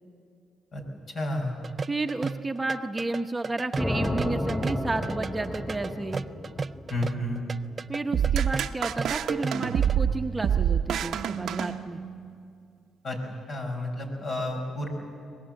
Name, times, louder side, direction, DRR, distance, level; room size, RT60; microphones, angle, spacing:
voice 1, 1.1-1.5 6.9-7.4 13.0-13.2 13.5-14.9, left 1 dB, 50° left, 2 dB, 5.5 m, -30 dB
sound 1, 1.6-9.9, right 4 dB, 35° right, 0.5 m, -34 dB
voice 2, 1.9-6.2 7.9-12.0, right 2 dB, 20° right, 5 dB, 1.0 m, -31 dB
sound 2, 3.8-7.8, left 1 dB, 10° left, 5.2 m, -32 dB
sound 3, 8.1-12.3, right 9 dB, 75° right, 0.8 m, -27 dB
23.5 x 20.5 x 7.8 m, 2.4 s
cardioid pair, 90°, 0 cm